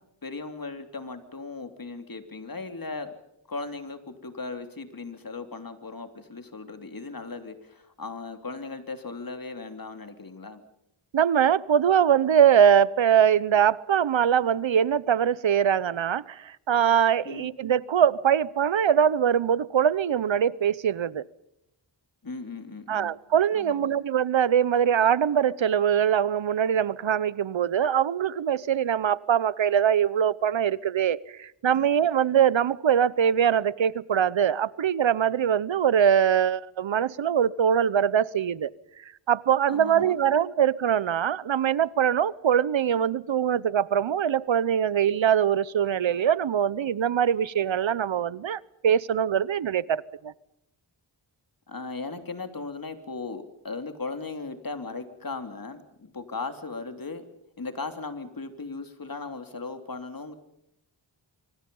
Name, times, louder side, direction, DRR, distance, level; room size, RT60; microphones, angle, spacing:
voice 1, 0.2-3.1 3.5-10.6 17.2-17.5 22.2-23.1 23.5-23.9 31.7-31.9 39.7-40.2 51.7-57.2 57.6-60.3, left 3 dB, 45° left, 3.2 m, -37 dB
voice 2, 11.1-21.2 22.9-38.7 39.3-50.3, right 8 dB, 70° right, 0.9 m, -23 dB
26.0 x 25.0 x 5.5 m
wide cardioid pair, 65°, 47 cm